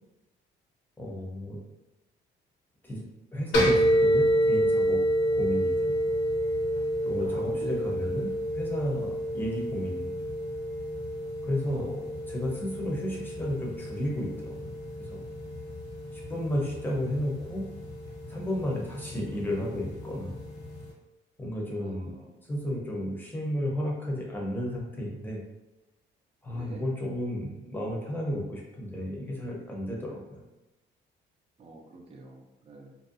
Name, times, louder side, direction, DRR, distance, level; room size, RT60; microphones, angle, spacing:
voice 1, 1.0-1.6 2.8-3.1 3.3-5.0 5.4-5.9 7.0-10.1 11.4-12.0 12.3-14.7 15.0-15.2 16.1-17.7 18.3-20.4 21.4-22.1 22.5-25.4 26.4-30.4, equal, 10° left, -3 dB, 0.7 m, -33 dB
sound 1, 3.5-20.9, equal, 60° left, 0.8 m, -29 dB
voice 2, 7.2-7.8 11.7-11.8 21.8-22.4 26.5-26.9 31.6-32.9, right 3 dB, 30° right, 1 dB, 0.5 m, -47 dB
2.6 x 2.2 x 2.5 m, 1.0 s
cardioid pair, 90°, 20 cm